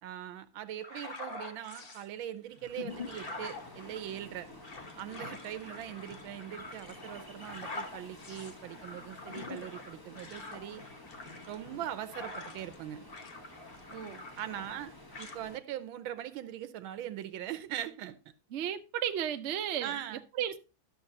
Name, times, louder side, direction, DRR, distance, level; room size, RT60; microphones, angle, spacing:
voice 1, 0.0-4.5 5.0-10.8 11.5-13.1 14.4-14.9 15.2-18.2 19.8-20.2, right 11 dB, 90° right, 1.6 m, -41 dB
sound 1, 0.8-2.0 2.5-12.8 13.1-14.8 15.1-15.4, left 3 dB, 35° left, 1.0 m, -45 dB
Ocean, 2.9-15.6, left 1 dB, 20° left, 0.7 m, -52 dB
voice 2, 13.9-14.2 18.5-19.9 20.4-20.6, right 9 dB, 65° right, 0.7 m, -33 dB
12.5 x 6.6 x 2.7 m
omnidirectional pair, 2.1 m